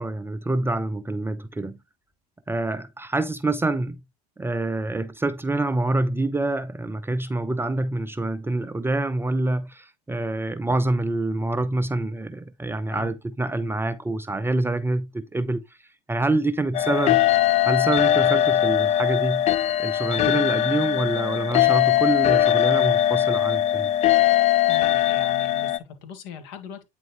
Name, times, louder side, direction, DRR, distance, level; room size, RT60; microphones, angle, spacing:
voice 1, 0.0-1.8 2.5-4.0 4.4-17.2 17.6-19.5 19.8-23.9, right 2 dB, 10° right, 0.6 m, -26 dB
sound 1, 16.7-25.8, left 12 dB, 35° left, 0.5 m, -20 dB
voice 2, 24.7-26.8, left 5 dB, 60° left, 2.4 m, -39 dB
9.1 x 4.3 x 3.1 m
hypercardioid pair, 80°, 20 cm